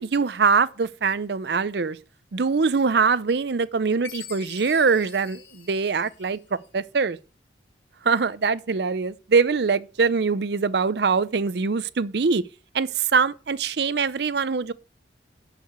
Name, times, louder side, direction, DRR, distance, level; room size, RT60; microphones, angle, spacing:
voice 1, 0.0-2.0 2.3-7.2 8.0-12.4 12.7-14.7, right 5 dB, 60° right, 0.5 m, -23 dB
Chime, 4.0-6.6, left 9 dB, 70° left, 1.5 m, -44 dB
11.5 x 4.9 x 7.9 m
head